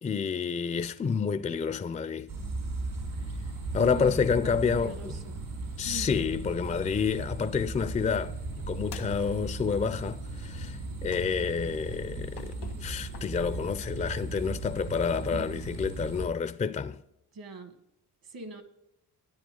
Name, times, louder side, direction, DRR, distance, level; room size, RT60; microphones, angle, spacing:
voice 1, 0.0-2.3 3.7-5.1 5.8-8.4 8.7-17.0, left 6 dB, 20° left, 0.4 m, -29 dB
sound 1, 2.3-16.3, right 2 dB, 80° right, 5.3 m, -37 dB
voice 2, 3.8-5.4 5.8-6.1 15.3-15.6 17.3-17.8 18.2-18.6, right 4 dB, 65° right, 1.7 m, -42 dB
sound 2, 8.9-9.7 11.1-11.7 12.3-13.5, left 9 dB, 85° left, 1.2 m, -49 dB
13.0 x 10.0 x 3.7 m
cardioid pair, 105°, 38 cm